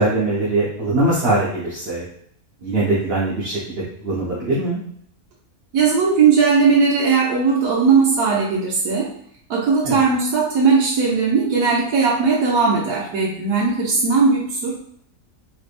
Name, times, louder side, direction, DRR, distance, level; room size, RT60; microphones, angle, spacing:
voice 1, 0.0-2.0 2.6-3.7 4.0-4.8 9.8-10.0, right 2 dB, 45° right, -8 dB, 1.0 m, -21 dB
voice 2, 5.7-9.1 9.5-14.7, right 5 dB, 80° right, -5 dB, 1.3 m, -18 dB
3.3 x 3.3 x 2.5 m, 0.64 s
omnidirectional pair, 1.6 m